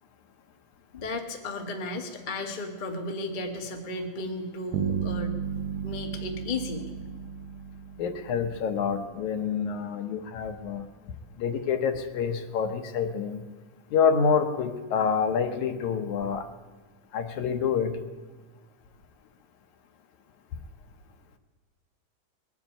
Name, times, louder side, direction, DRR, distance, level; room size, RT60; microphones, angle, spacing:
voice 1, 0.9-5.4 5.8-6.9, left 2 dB, 45° left, 3 dB, 0.6 m, -34 dB
sound 1, 4.7-8.7, right 7 dB, 80° right, 2.3 m, -33 dB
voice 2, 8.0-10.9 11.4-13.4 13.9-16.5 17.1-18.0, left 6 dB, 75° left, 8 dB, 2.2 m, -27 dB
20.5 x 7.2 x 9.0 m, 1.3 s
omnidirectional pair, 3.6 m